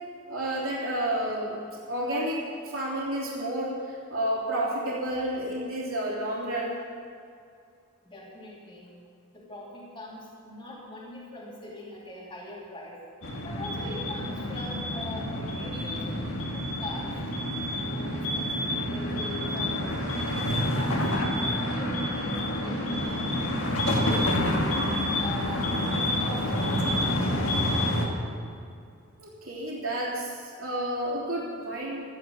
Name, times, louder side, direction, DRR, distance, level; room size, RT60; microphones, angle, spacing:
voice 1, 0.3-1.6 1.9-2.4 2.7-6.8 29.2-32.0, right 1 dB, 70° right, -6 dB, 3.3 m, -30 dB
voice 2, 8.0-8.9 9.3-13.0 13.4-17.1 17.7-23.3 23.7-24.8 25.2-27.5, left 1 dB, 20° left, -5 dB, 2.7 m, -42 dB
sound 1, 13.2-28.1, left 1 dB, 65° left, 2.0 m, -28 dB
14.0 x 10.0 x 7.1 m, 2.3 s
head